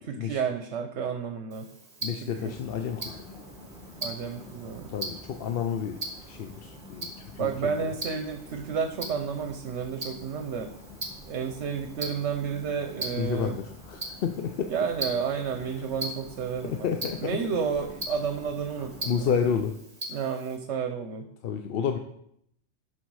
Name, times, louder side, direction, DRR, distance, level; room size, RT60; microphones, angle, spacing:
voice 1, 0.0-1.7 2.2-2.5 4.0-4.9 7.4-10.7 11.3-13.6 14.7-16.9 17.2-19.3 20.1-21.3, right 6 dB, 70° right, 6 dB, 1.0 m, -31 dB
Tick-tock, 1.5-20.6, right 2 dB, 30° right, 1.5 m, -41 dB
voice 2, 2.0-3.2 4.9-6.0 6.3-7.9 13.1-14.7 16.6-17.4 19.1-19.7 21.4-22.0, left 7 dB, 60° left, 6 dB, 0.8 m, -30 dB
sound 1, 2.3-19.6, left 1 dB, 5° right, 2.0 m, -48 dB
11.0 x 6.1 x 4.7 m, 0.73 s
omnidirectional pair, 1.2 m